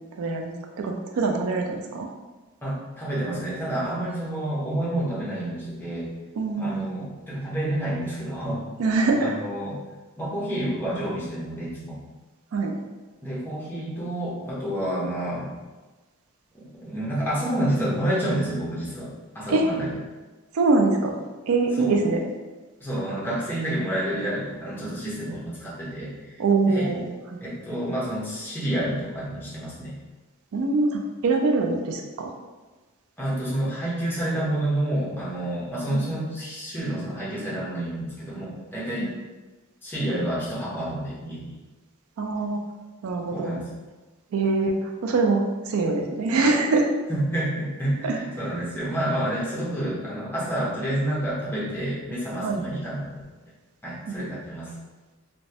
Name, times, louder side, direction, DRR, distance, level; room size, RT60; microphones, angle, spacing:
voice 1, 0.2-2.1 6.4-6.8 8.8-9.3 12.5-12.8 19.5-19.7 20.5-22.2 26.4-27.4 30.5-32.3 35.9-36.0 39.0-39.1 42.2-42.6 43.0-43.5 44.3-46.9 48.0-48.2 52.4-52.6 54.1-54.3, right 3 dB, 75° right, 2 dB, 0.4 m, -24 dB
voice 2, 2.6-6.1 6.6-8.7 9.2-9.8 10.2-12.0 13.2-15.5 16.8-20.0 21.8-22.0 22.8-26.9 27.4-30.0 33.2-39.1 39.8-41.5 43.3-43.7 47.1-53.1 53.8-54.7, right 1 dB, 10° left, -8 dB, 0.7 m, -29 dB
3.0 x 2.2 x 2.7 m, 1.2 s
head